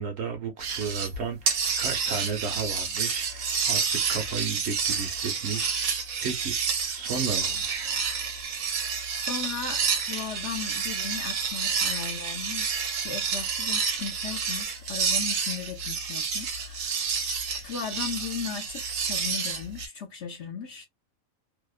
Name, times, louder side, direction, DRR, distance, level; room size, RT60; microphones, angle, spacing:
voice 1, 0.0-6.6 6.9-7.9, right 5 dB, 60° right, 0.9 m, -34 dB
sound 1, 0.6-1.2 1.5-19.9, right 6 dB, 75° right, 1.1 m, -29 dB
voice 2, 9.3-20.9, left 7 dB, 65° left, 0.8 m, -37 dB
2.7 x 2.0 x 2.2 m
omnidirectional pair, 1.5 m